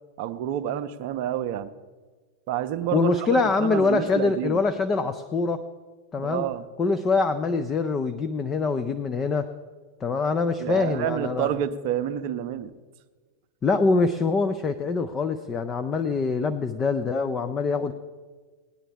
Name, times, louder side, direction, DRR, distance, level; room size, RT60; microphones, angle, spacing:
voice 1, 0.2-1.7 2.5-4.6 6.2-6.6 10.6-12.7, right 10 dB, 45° right, 11 dB, 0.6 m, -29 dB
voice 2, 2.9-5.6 6.1-6.5 6.8-9.5 10.0-11.5 13.6-17.9, left 4 dB, 25° left, 11 dB, 0.5 m, -24 dB
18.5 x 9.8 x 3.4 m, 1.4 s
figure-of-eight pair, 90°, 0 cm